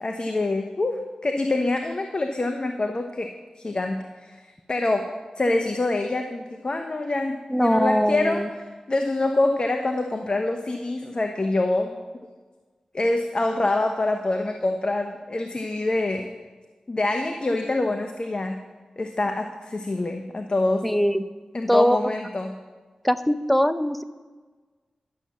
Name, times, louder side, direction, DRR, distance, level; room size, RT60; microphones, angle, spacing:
voice 1, 0.0-8.5 8.9-12.0 12.9-16.3 16.9-18.6 19.0-20.9 21.5-22.5, left 2 dB, 45° left, 5 dB, 0.9 m, -26 dB
voice 2, 7.5-8.5 20.8-21.3 21.7-22.0 23.0-24.0, equal, 5° left, 12 dB, 0.7 m, -21 dB
11.5 x 6.9 x 7.4 m, 1.4 s
cardioid pair, 45°, 2 cm